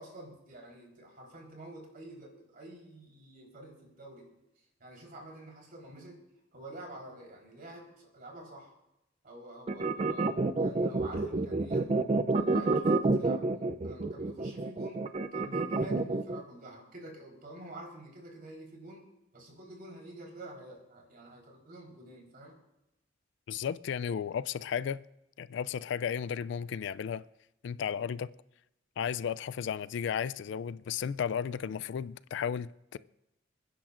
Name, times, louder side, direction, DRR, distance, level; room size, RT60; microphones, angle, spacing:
voice 1, 0.0-4.3 4.8-6.2 6.5-8.7 9.2-11.9 12.3-13.4 13.8-19.1 19.3-22.6, right 1 dB, 50° right, 4.0 m, -48 dB
sound 1, 9.7-16.4, right 3 dB, 35° right, 0.4 m, -28 dB
voice 2, 23.5-25.0 25.4-27.2 27.6-28.3 29.0-33.0, left 7 dB, 65° left, 0.3 m, -34 dB
28.5 x 10.0 x 2.5 m
head